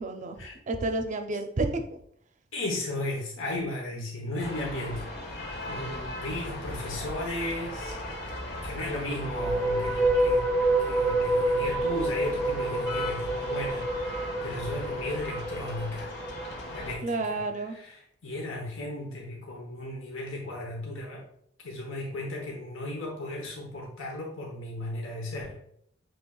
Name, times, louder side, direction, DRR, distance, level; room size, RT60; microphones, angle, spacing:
voice 1, 0.0-0.4 0.7-1.8 17.0-17.8, right 2 dB, 40° right, 6 dB, 0.5 m, -30 dB
voice 2, 2.5-5.1 5.7-7.9 8.6-10.5 10.8-16.1 16.7-21.3 21.6-25.6, left 1 dB, 80° left, -1 dB, 1.0 m, -35 dB
sound 1, 4.4-17.0, left 1 dB, 60° left, 1.0 m, -38 dB
sound 2, 9.3-16.5, right 2 dB, 15° left, 0.6 m, -28 dB
6.0 x 3.2 x 2.3 m, 0.67 s
head